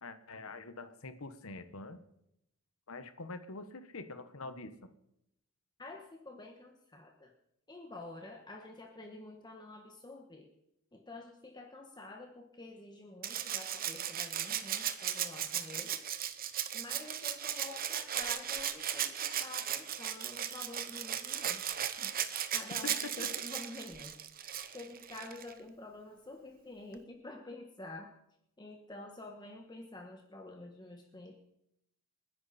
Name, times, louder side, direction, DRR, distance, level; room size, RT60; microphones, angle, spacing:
voice 1, 0.0-2.0 2.9-4.9 22.8-23.3, left 3 dB, 70° left, 10 dB, 1.2 m, -45 dB
voice 2, 5.8-7.3 7.7-10.5 10.9-16.1 16.7-22.1 22.5-24.2 24.7-28.1 28.6-31.3, left 2 dB, 20° left, 2 dB, 1.4 m, -48 dB
Rattle (instrument), 13.2-25.5 26.9-27.0, right 10 dB, 45° right, 0.9 m, -37 dB
29.0 x 10.5 x 4.3 m, 0.81 s
head